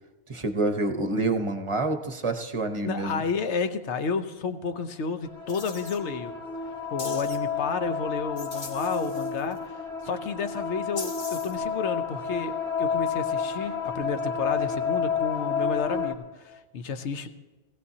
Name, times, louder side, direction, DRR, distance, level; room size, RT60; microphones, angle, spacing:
voice 1, 0.3-3.2, right 2 dB, 30° right, 6 dB, 0.8 m, -27 dB
voice 2, 2.8-6.3 6.9-9.6 10.0-17.3, left 5 dB, 70° left, 9 dB, 1.1 m, -31 dB
sound 1, 5.3-16.1, left 6 dB, 5° left, 1.4 m, -30 dB
sound 2, 5.5-6.0 7.0-7.4 8.4-9.6 10.9-11.6, left 3 dB, 40° left, 1.4 m, -40 dB
19.0 x 16.0 x 2.8 m, 1.2 s
omnidirectional pair, 1.2 m